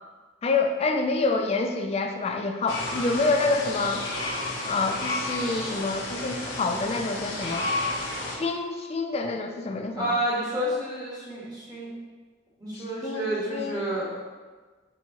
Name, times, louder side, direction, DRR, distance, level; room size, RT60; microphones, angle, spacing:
voice 1, 0.4-4.1 4.6-7.7 8.3-10.1 12.8-13.8, left 3 dB, 30° left, 4 dB, 0.3 m, -27 dB
sound 1, 2.7-8.4, left 2 dB, 80° left, 0.7 m, -31 dB
voice 2, 10.0-11.9 12.6-14.2, right 1 dB, 20° right, -7 dB, 1.3 m, -29 dB
4.4 x 3.5 x 2.9 m, 1.4 s
head